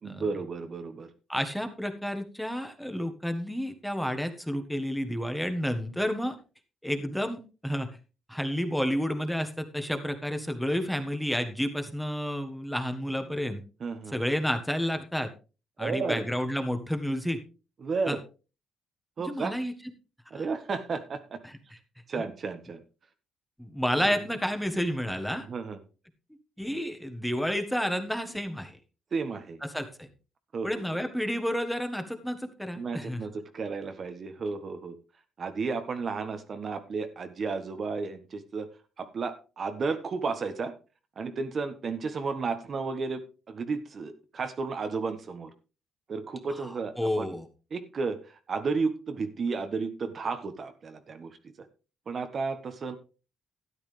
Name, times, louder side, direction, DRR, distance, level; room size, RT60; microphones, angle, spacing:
voice 1, 0.0-1.1 13.8-14.2 15.8-16.3 17.8-18.2 19.2-19.5 20.3-21.4 22.1-22.8 24.0-24.2 25.5-25.8 29.1-29.6 30.5-30.8 32.8-34.9 35.4-38.7 39.0-40.7 41.2-45.5 46.1-47.3 47.7-51.7 52.1-53.0, right 4 dB, 45° right, 8 dB, 1.4 m, -33 dB
voice 2, 1.3-6.4 6.8-8.0 8.3-13.6 14.1-15.3 15.8-17.4 18.1-18.2 19.2-19.7 20.3-20.4 21.4-21.5 23.6-25.5 26.6-28.8 29.6-30.1 30.6-33.2 46.6-47.4, equal, ahead, 7 dB, 1.5 m, -30 dB
12.5 x 9.8 x 3.4 m, 0.32 s
cardioid pair, 90°, 0 cm